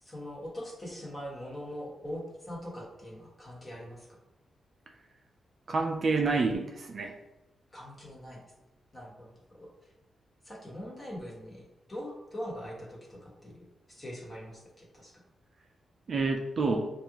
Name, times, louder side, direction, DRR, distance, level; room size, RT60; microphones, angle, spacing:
voice 1, 0.0-4.1 7.7-8.4 8.9-9.7 10.4-11.6 11.9-15.1, equal, 20° left, -4 dB, 1.4 m, -42 dB
voice 2, 5.7-7.1 16.1-16.9, right 3 dB, 45° right, 2 dB, 0.5 m, -28 dB
6.6 x 2.5 x 3.0 m, 1.0 s
wide cardioid pair, 135°, 0 cm